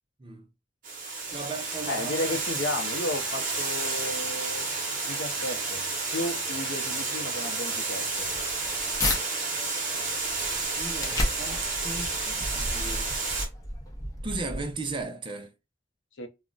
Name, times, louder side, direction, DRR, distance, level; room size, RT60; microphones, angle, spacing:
Water, 0.8-13.5, right 3 dB, 45° right, 0.8 m, -31 dB
voice 1, 1.3-2.4 10.8-13.1 14.2-15.5, right 3 dB, 25° right, 0.4 m, -36 dB
voice 2, 1.8-4.7 5.1-5.8 6.1-8.3 16.2-16.3, left 1 dB, 85° left, 0.6 m, -33 dB
sound 1, 8.3-9.2 9.7-15.0, left 1 dB, 20° left, 0.7 m, -33 dB
2.4 x 2.1 x 3.7 m
head